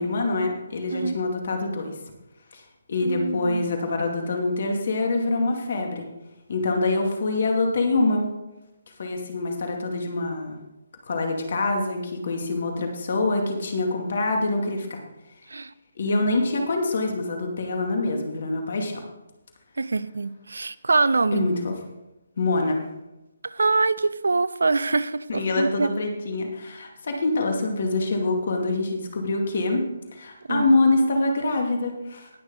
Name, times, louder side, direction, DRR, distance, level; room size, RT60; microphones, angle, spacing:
voice 1, 0.0-1.9 2.5-2.6 2.9-6.1 6.5-8.3 9.0-10.6 11.1-15.0 16.0-19.0 21.3-21.7 22.4-22.8 25.3-29.9 30.1-32.3, left 2 dB, 60° left, 3 dB, 2.4 m, -25 dB
voice 2, 3.0-3.7 15.5-15.7 19.8-21.5 23.4-25.9 30.5-30.7, right 3 dB, 80° right, 17 dB, 0.6 m, -24 dB
19.0 x 6.5 x 3.8 m, 0.95 s
figure-of-eight pair, 150°, 0 cm